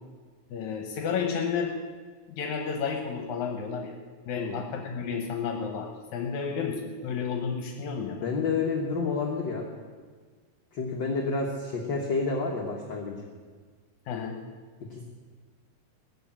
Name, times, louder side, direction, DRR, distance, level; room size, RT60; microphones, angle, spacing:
voice 1, 0.5-1.7 2.3-3.9 4.3-8.2 14.1-14.4, left 6 dB, 80° left, 3 dB, 2.4 m, -31 dB
voice 2, 8.1-9.7 10.7-13.2 14.9-15.0, left 4 dB, 50° left, 0 dB, 1.5 m, -29 dB
17.5 x 6.8 x 8.6 m, 1.5 s
omnidirectional pair, 3.4 m